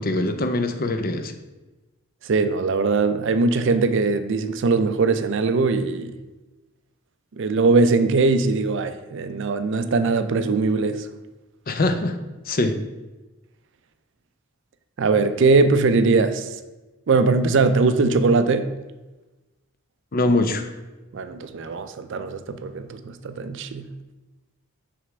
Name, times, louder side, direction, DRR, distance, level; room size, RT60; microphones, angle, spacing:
voice 1, 0.0-1.3 11.7-12.2 12.5-12.8 20.1-20.7, left 2 dB, 40° left, 0.5 m, -22 dB
voice 2, 2.2-6.2 7.4-11.1 15.0-16.5 17.1-18.7 21.1-23.9, right 3 dB, 60° right, 0.4 m, -21 dB
6.3 x 3.4 x 6.0 m
head